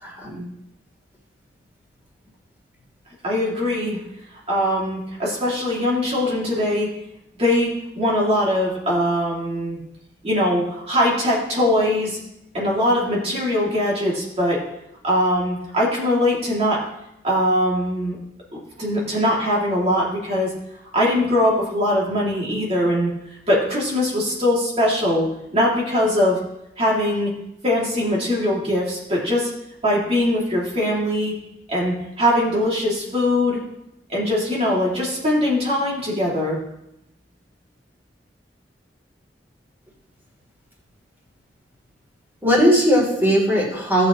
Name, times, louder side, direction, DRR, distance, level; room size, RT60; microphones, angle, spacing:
voice 1, 0.0-0.4 42.4-44.1, equal, 15° right, -3 dB, 3.4 m, -18 dB
voice 2, 3.2-4.0 4.5-6.9 7.4-9.8 10.2-12.2 12.5-14.6 15.0-16.8 17.2-18.2 18.5-20.5 20.9-23.1 23.5-25.3 25.5-26.4 26.8-27.3 27.6-29.5 29.8-31.3 31.7-33.6 34.1-36.6, left 1 dB, 35° right, -5 dB, 2.8 m, -21 dB
17.5 x 7.1 x 3.2 m, 0.84 s
head